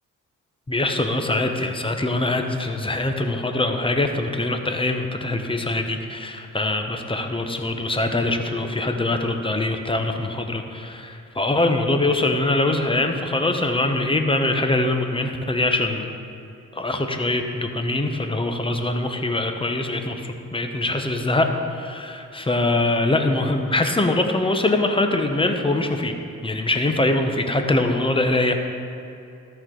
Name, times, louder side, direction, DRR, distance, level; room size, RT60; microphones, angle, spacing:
voice 1, 0.7-16.1 16.7-26.2 26.4-28.7, left 2 dB, 15° left, 5 dB, 0.9 m, -23 dB
13.5 x 4.7 x 3.9 m, 2.6 s
supercardioid pair, 60°, 32 cm